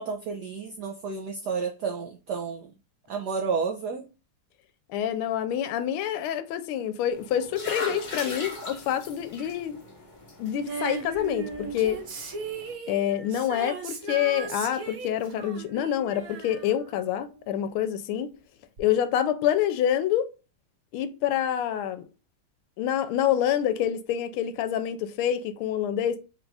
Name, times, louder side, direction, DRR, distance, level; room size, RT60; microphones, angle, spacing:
voice 1, 0.0-2.7 3.1-4.1, right 5 dB, 85° right, 0.9 m, -31 dB
voice 2, 4.9-9.8 10.4-12.0 12.9-18.3 18.8-20.3 20.9-22.0 22.8-26.2, left 10 dB, 80° left, 1.4 m, -27 dB
sound 1, 7.1-12.7, left 2 dB, 45° left, 0.6 m, -39 dB
Female singing, 10.7-17.6 18.8-18.9, right 5 dB, 55° right, 1.1 m, -37 dB
4.0 x 2.4 x 4.6 m
omnidirectional pair, 2.3 m